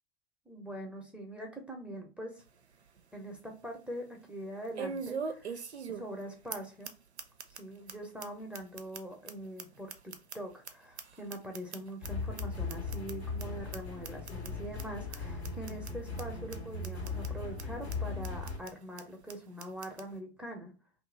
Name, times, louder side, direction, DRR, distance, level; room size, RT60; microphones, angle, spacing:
voice 1, 0.5-2.4 3.1-5.6 5.9-6.9 7.6-20.7, right 1 dB, 5° right, 1 dB, 0.6 m, -43 dB
sound 1, 2.4-2.5 3.0-3.1 4.8-6.2 6.5-6.6 6.8-6.9 7.2-7.6 7.9-8.0 8.2-8.3 8.5-10.7 11.0-12.1 12.4-12.5 12.7-13.1 13.4-13.5 13.7-13.8 14.0-14.5 14.8-14.9 15.1-15.2 15.4-15.9 16.2-16.3 16.5-16.6 16.8-17.3 17.6-17.7 17.9-18.0 18.2-18.7 19.0-19.1 19.3-19.4 19.6-20.0, right 5 dB, 90° right, 0.5 m, -40 dB
sound 2, 12.0-18.6, left 4 dB, 80° left, 1.2 m, -38 dB
2.7 x 2.5 x 3.7 m, 0.37 s
figure-of-eight pair, 95°, 32 cm